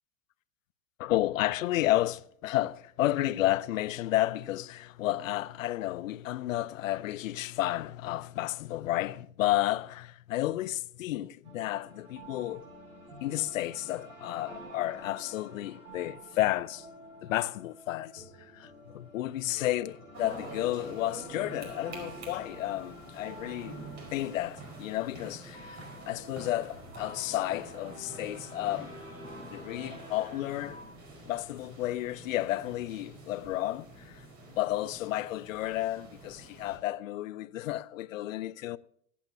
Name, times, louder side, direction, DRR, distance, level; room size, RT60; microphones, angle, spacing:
voice 1, 1.0-12.6 13.2-16.9 17.2-23.8 24.1-28.9 29.4-30.8 31.3-38.8, left 15 dB, 75° left, 0.7 m, -32 dB
sound 1, 11.4-30.8, right 1 dB, 75° right, 6.3 m, -49 dB
sound 2, 20.1-36.8, right 1 dB, 40° right, 4.9 m, -47 dB
24.0 x 8.8 x 2.8 m
hypercardioid pair, 95°, 40 cm